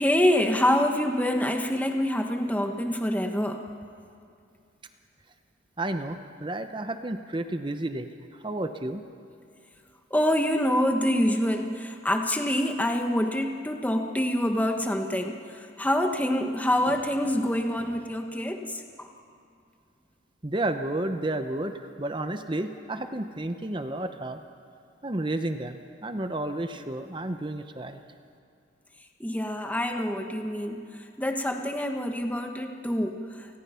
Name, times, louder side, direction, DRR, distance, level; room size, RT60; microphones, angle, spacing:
voice 1, 0.0-3.6 10.1-19.1 29.2-30.8 31.2-33.5, left 1 dB, 10° left, 4 dB, 1.2 m, -26 dB
voice 2, 5.8-9.0 20.4-24.4 25.0-28.0, right 1 dB, 25° right, 8 dB, 0.8 m, -31 dB
29.0 x 19.5 x 5.7 m, 2.5 s
head